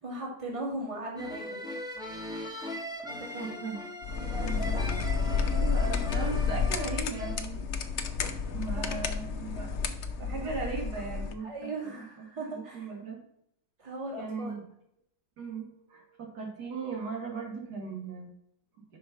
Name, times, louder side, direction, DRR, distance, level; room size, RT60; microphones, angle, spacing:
voice 1, 0.0-1.7 3.1-3.6 4.1-4.9 8.8-9.0 11.0-11.2 11.4-12.9 13.8-14.5, right 2 dB, 20° right, -3 dB, 2.2 m, -39 dB
sound 1, 1.2-7.4, equal, 5° right, 1.1 m, -39 dB
voice 2, 3.4-3.8 4.4-4.9 5.5-13.2 14.2-14.6 15.4-18.3, right 4 dB, 70° right, 0 dB, 2.2 m, -38 dB
sound 2, 4.0-11.3, left 5 dB, 55° left, 0.8 m, -31 dB
5.7 x 5.1 x 5.7 m, 0.71 s
omnidirectional pair, 1.8 m